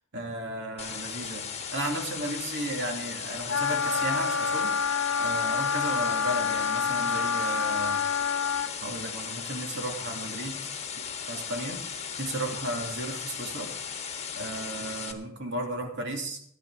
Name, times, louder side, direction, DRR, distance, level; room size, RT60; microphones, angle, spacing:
voice 1, 0.1-8.0 8.8-10.6 11.3-11.8 12.2-13.7 14.4-16.4, right 1 dB, 60° right, 2 dB, 2.5 m, -34 dB
sound 1, 0.8-15.1, left 7 dB, 30° left, 1.4 m, -37 dB
Wind instrument woodwind instrument, 3.5-8.7, left 6 dB, 65° left, 0.8 m, -27 dB
15.0 x 10.5 x 4.7 m, 0.67 s
head